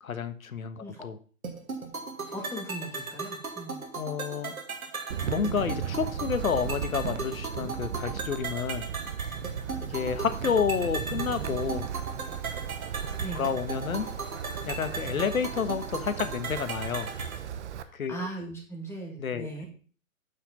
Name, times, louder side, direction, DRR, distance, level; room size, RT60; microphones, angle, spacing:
voice 1, 0.0-1.2 4.0-4.5 5.2-8.8 9.8-11.9 13.3-14.1 14.6-17.1 17.9-18.3 19.2-19.6, left 6 dB, 75° left, 11 dB, 1.3 m, -30 dB
sound 1, 1.4-17.4, right 4 dB, 85° right, 2.3 m, -38 dB
voice 2, 2.3-3.8 13.2-13.5 17.8-19.7, right 1 dB, 5° left, -1 dB, 2.2 m, -39 dB
Wind, 5.1-17.8, right 9 dB, 55° right, 1.0 m, -36 dB
8.6 x 5.9 x 5.2 m, 0.40 s
hypercardioid pair, 135°, 42 cm